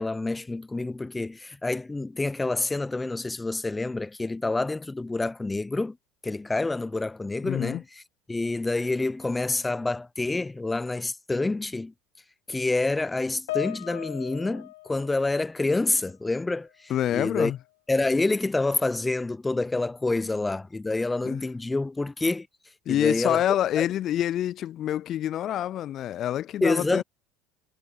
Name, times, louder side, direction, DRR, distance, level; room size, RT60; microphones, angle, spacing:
voice 1, 0.0-6.0 6.2-8.0 8.3-11.9 12.5-17.5 17.9-22.5 22.9-23.4 23.8-23.9 26.6-27.0, left 2 dB, 15° left, 0.8 m, -27 dB
voice 2, 7.4-7.8 16.9-17.6 21.2-21.4 22.9-27.0, left 11 dB, 50° left, 0.4 m, -27 dB
Piano, 13.5-16.1 16.4-16.7 17.5-17.6, left 20 dB, 80° left, 0.7 m, -38 dB
hypercardioid pair, 85°, 0 cm